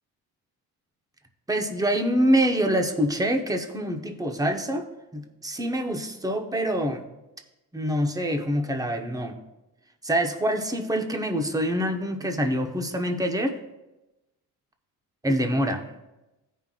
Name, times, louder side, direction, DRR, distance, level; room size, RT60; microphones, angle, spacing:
voice 1, 1.5-4.9 5.1-7.0 7.7-9.4 10.0-13.6 15.2-15.9, equal, 10° right, 4 dB, 0.9 m, -25 dB
16.0 x 5.5 x 2.4 m, 1.0 s
cardioid pair, 90°, 38 cm